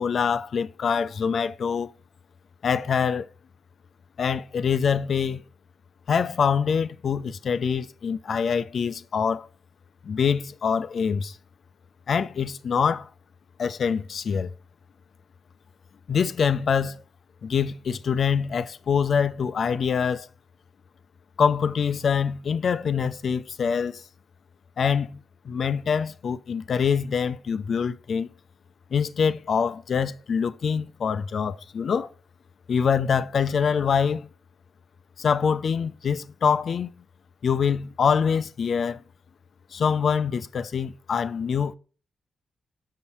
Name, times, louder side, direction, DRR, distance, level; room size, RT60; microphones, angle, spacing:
voice 1, 0.0-1.9 2.6-3.3 4.2-5.4 6.1-9.5 10.0-11.4 12.1-13.1 13.6-14.5 16.1-17.0 17.4-20.3 21.4-24.0 24.8-25.2 25.4-28.3 28.9-32.1 32.7-34.3 35.2-36.9 37.4-39.0 39.7-41.7, left 6 dB, 65° left, 0.5 m, -25 dB
5.8 x 5.6 x 4.2 m
supercardioid pair, 55°, 0 cm